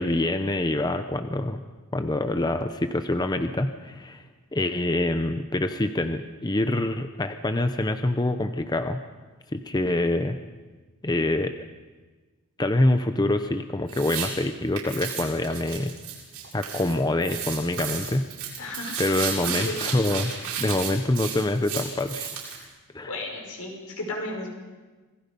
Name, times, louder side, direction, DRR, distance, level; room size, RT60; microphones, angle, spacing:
voice 1, 0.0-1.6 1.9-4.2 4.5-9.0 9.5-10.4 11.0-11.5 12.6-15.9 16.5-18.3 19.0-20.3 20.6-22.3 22.9-23.1, left 2 dB, 20° left, 8 dB, 0.8 m, -25 dB
sound 1, 13.9-14.3 14.8-16.9 17.2-22.6, right 7 dB, 80° right, 7.3 m, -33 dB
voice 2, 18.6-19.0 19.4-19.8 23.1-24.5, left 2 dB, 80° left, 0 dB, 5.7 m, -34 dB
27.5 x 19.0 x 5.4 m, 1.3 s
head